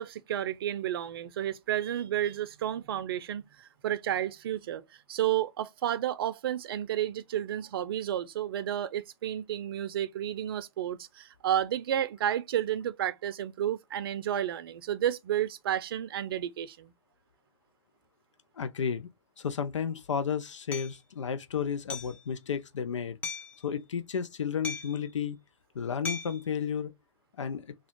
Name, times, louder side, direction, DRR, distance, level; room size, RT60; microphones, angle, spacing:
voice 1, 0.0-4.8 5.1-16.9, right 11 dB, 50° right, 0.5 m, -31 dB
voice 2, 18.6-19.1 19.4-23.2 23.6-25.4 25.7-26.9 27.4-27.7, left 7 dB, 75° left, 0.6 m, -32 dB
Hammer, 20.7-20.9 21.9-22.2 23.2-23.6 24.6-25.1 26.0-26.4, left 4 dB, 10° left, 0.6 m, -37 dB
3.5 x 2.3 x 3.6 m
hypercardioid pair, 130°, 16 cm